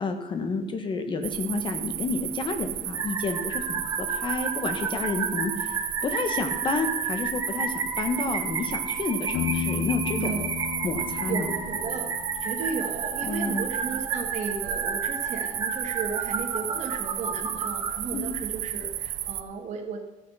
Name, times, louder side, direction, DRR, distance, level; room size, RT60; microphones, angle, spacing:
voice 1, 0.0-5.7 6.0-10.3 10.8-11.5 13.2-13.7 18.1-18.2, left 3 dB, 35° left, 7 dB, 1.3 m, -30 dB
sound 1, 1.2-19.4, right 12 dB, 75° right, 0.7 m, -34 dB
sound 2, 2.9-17.9, right 4 dB, 25° right, 1.3 m, -32 dB
Piano, 9.3-13.0, left 10 dB, 90° left, 0.5 m, -33 dB
voice 2, 11.3-12.1 12.4-20.0, right 5 dB, 55° right, 0 dB, 1.7 m, -34 dB
13.5 x 6.5 x 5.6 m, 1.1 s
cardioid pair, 165°, 14 cm